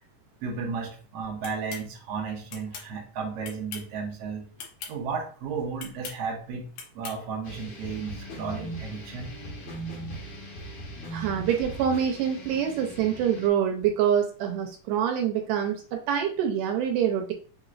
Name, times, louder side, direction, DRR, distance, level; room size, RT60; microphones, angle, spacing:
voice 1, 0.4-4.5 4.9-6.7 6.9-9.7, right 5 dB, 60° right, 0 dB, 1.7 m, -34 dB
sound 1, 1.4-1.9 2.5-2.9 3.4-3.9 4.6-4.9 5.8-6.2 6.8-7.2, left 6 dB, 85° left, 2.6 m, -40 dB
sound 2, 7.4-13.5, right 1 dB, 55° left, 1.5 m, -39 dB
voice 2, 11.1-17.3, right 9 dB, 80° right, 3 dB, 2.2 m, -26 dB
6.0 x 3.0 x 2.4 m, 0.39 s
omnidirectional pair, 3.9 m